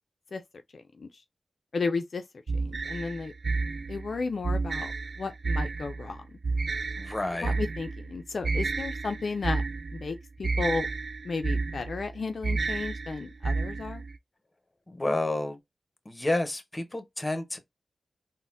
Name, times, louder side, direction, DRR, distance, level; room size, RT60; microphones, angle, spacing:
voice 1, 0.7-1.1 1.7-2.2 2.5-3.3 3.9-4.9 5.2-6.3 7.4-9.6 9.9-10.9 11.2-14.0, left 4 dB, 65° left, 0.3 m, -33 dB
sound 1, 2.5-14.2, right 3 dB, 60° right, 0.3 m, -31 dB
voice 2, 7.0-7.5 14.9-15.6 16.0-17.6, left 2 dB, 25° left, 0.7 m, -30 dB
3.9 x 2.0 x 2.4 m
cardioid pair, 45°, 0 cm